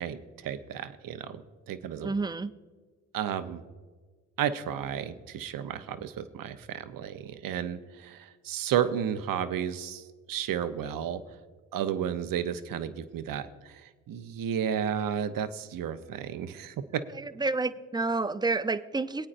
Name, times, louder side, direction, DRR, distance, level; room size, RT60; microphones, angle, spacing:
voice 1, 0.0-2.1 3.1-3.6 4.4-11.2 11.7-17.0, right 9 dB, 70° right, 10 dB, 0.7 m, -32 dB
voice 2, 2.0-2.5 17.4-19.3, right 3 dB, 10° right, 13 dB, 0.5 m, -29 dB
22.0 x 8.6 x 2.5 m, 1.4 s
supercardioid pair, 50°, 35 cm